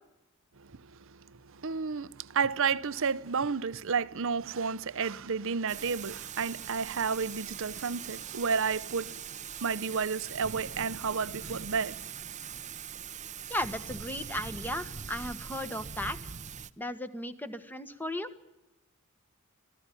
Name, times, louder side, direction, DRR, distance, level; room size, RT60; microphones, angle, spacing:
voice 1, 1.5-9.2 9.6-12.0, right 5 dB, 65° right, 0.8 m, -31 dB
Thunder / Rain, 5.7-16.7, right 7 dB, 35° right, 0.8 m, -42 dB
voice 2, 13.5-16.2 16.8-18.3, left 1 dB, 10° left, 1.6 m, -35 dB
26.0 x 16.5 x 9.8 m
head